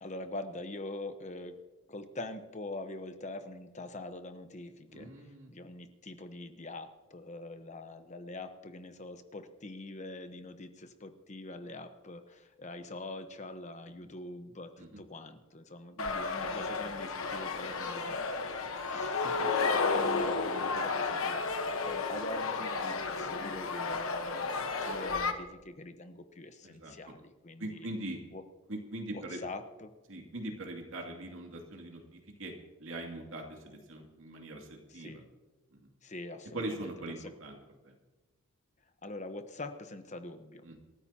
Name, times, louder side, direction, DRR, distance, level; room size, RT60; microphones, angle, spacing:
voice 1, 0.0-1.6 1.9-27.9 28.3-28.4 29.1-29.9 34.9-35.3 36.0-37.3 39.0-40.7, left 2 dB, 35° left, 8 dB, 1.1 m, -44 dB
voice 2, 4.9-5.5 14.8-14.9 18.7-18.8 26.6-26.9 27.6-28.2 28.7-29.4 30.1-32.5 32.8-35.1 36.5-37.5 40.6-40.8, right 1 dB, 60° right, 2 dB, 2.7 m, -41 dB
sound 1, 16.0-25.3, left 4 dB, 65° left, 1.2 m, -32 dB
28.0 x 13.0 x 2.9 m, 1.2 s
head